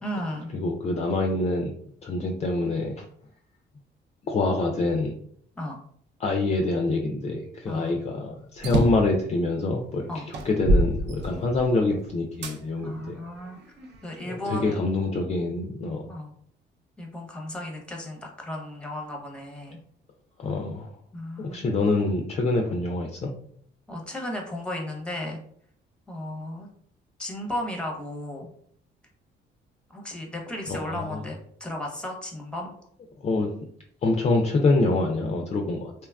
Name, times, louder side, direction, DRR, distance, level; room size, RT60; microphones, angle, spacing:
voice 1, 0.0-0.5 5.6-5.8 7.7-8.3 10.1-10.3 12.8-13.6 14.0-14.9 16.1-16.3 17.0-19.8 21.1-21.6 23.9-25.4 26.1-26.7 27.2-28.5 29.9-32.7, left 1 dB, 5° left, 1 dB, 0.7 m, -35 dB
voice 2, 0.5-1.7 2.0-3.0 4.3-5.1 6.2-13.2 14.2-16.2 20.4-20.9 21.4-23.3 30.7-31.3 33.2-33.5 34.0-35.9, left 2 dB, 35° left, 1 dB, 0.4 m, -26 dB
sound 1, 8.6-9.1 9.8-9.9 10.3-11.8 12.4-12.6 13.3-14.3, right 1 dB, 60° right, 0.4 m, -25 dB
2.8 x 2.3 x 2.2 m, 0.64 s
cardioid pair, 90°, 20 cm